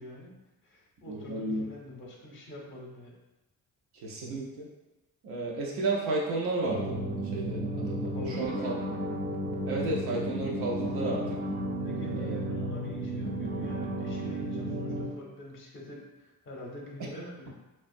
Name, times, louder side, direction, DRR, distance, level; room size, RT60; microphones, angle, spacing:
voice 1, 0.0-3.2 8.1-8.7 10.8-10.9 11.7-17.5, left 1 dB, 35° left, -1 dB, 0.6 m, -45 dB
voice 2, 1.1-1.6 4.0-4.7 5.2-7.0 7.3-8.7 9.7-11.4 12.1-12.4, right 2 dB, 80° right, -3 dB, 0.5 m, -32 dB
sound 1, 6.7-15.1, right 1 dB, 25° right, 0.5 m, -33 dB
2.4 x 2.2 x 2.5 m, 1.1 s
supercardioid pair, 55°, 38 cm